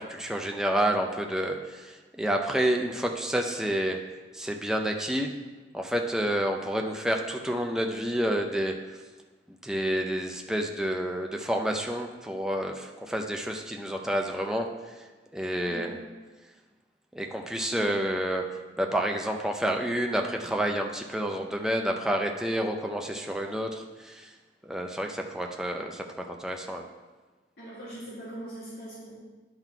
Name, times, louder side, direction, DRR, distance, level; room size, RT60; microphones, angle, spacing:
voice 1, 0.0-4.0 4.3-5.3 5.7-8.7 9.6-14.7 15.3-16.0 17.1-18.5 18.8-24.3 24.6-26.8, right 1 dB, 5° right, 2 dB, 0.5 m, -29 dB
voice 2, 27.6-29.2, right 1 dB, 70° left, -10 dB, 1.8 m, -41 dB
10.5 x 3.9 x 4.5 m, 1.3 s
head